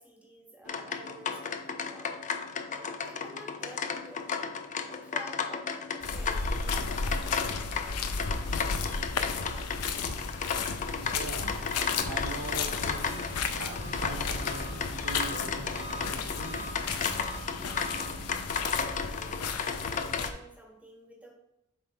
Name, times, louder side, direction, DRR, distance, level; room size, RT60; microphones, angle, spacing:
voice 1, 0.0-2.3 2.6-4.5 4.9-6.9 18.5-19.4 19.8-21.3, equal, 5° right, -1 dB, 1.5 m, -50 dB
sound 1, 0.7-20.3, left 6 dB, 35° left, 0.5 m, -35 dB
sound 2, 6.0-20.3, left 4 dB, 90° left, 0.7 m, -34 dB
voice 2, 11.0-11.6 12.0-16.6, right 2 dB, 80° right, 3 dB, 1.3 m, -41 dB
Engine, 11.7-18.4, right 1 dB, 30° right, 1.2 m, -44 dB
7.3 x 3.7 x 4.5 m, 0.86 s
head